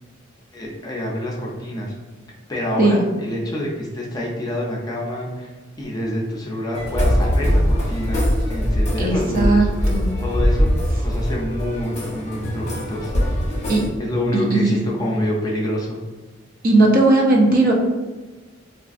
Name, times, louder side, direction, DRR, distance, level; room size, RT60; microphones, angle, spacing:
voice 1, 0.5-1.9 2.5-5.5 5.8-9.9 10.2-10.7 11.0-13.4 14.0-16.0, left 1 dB, 20° left, -3 dB, 0.5 m, -26 dB
sound 1, 6.7-13.9, equal, 35° left, 0.8 m, -21 dB
voice 2, 9.0-10.1 13.7-13.8 14.3-14.7 16.6-17.7, right 2 dB, 45° right, -1 dB, 0.5 m, -17 dB
3.7 x 2.4 x 2.4 m, 1.2 s
head